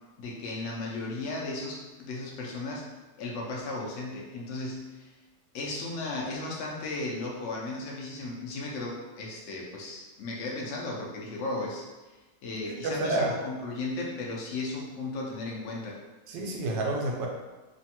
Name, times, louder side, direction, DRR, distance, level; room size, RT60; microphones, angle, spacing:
voice 1, 0.2-2.9 3.2-5.1 5.5-11.9 12.4-16.0, left 2 dB, 80° left, -2 dB, 0.6 m, -35 dB
voice 2, 12.6-13.3 16.3-17.3, right 2 dB, 80° right, 0 dB, 1.2 m, -29 dB
3.2 x 2.1 x 2.8 m, 1.2 s
omnidirectional pair, 1.9 m